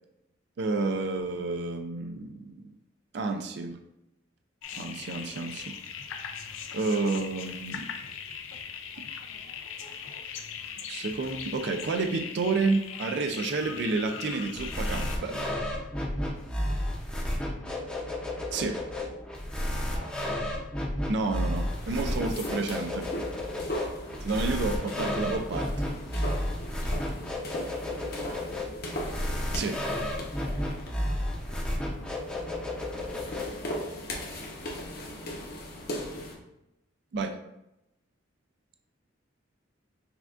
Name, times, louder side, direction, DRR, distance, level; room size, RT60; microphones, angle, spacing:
voice 1, 0.6-2.7 3.1-3.8 4.8-5.7 6.7-7.9 10.9-15.5 18.5-18.8 21.1-23.0 24.2-25.7 29.5-29.8 37.1-37.4, right 3 dB, 60° right, 5 dB, 0.4 m, -30 dB
sound 1, 4.6-15.2, left 7 dB, 80° left, 0.4 m, -40 dB
sound 2, 14.5-33.7, left 1 dB, 5° left, 0.6 m, -32 dB
voice 2, 17.1-18.0 18.8-19.2 19.7-20.6 27.5-28.8 31.0-31.2, right 1 dB, 75° right, -3 dB, 1.1 m, -50 dB
sound 3, 21.5-36.4, equal, 50° left, 0.8 m, -39 dB
5.9 x 2.3 x 2.4 m, 0.87 s
head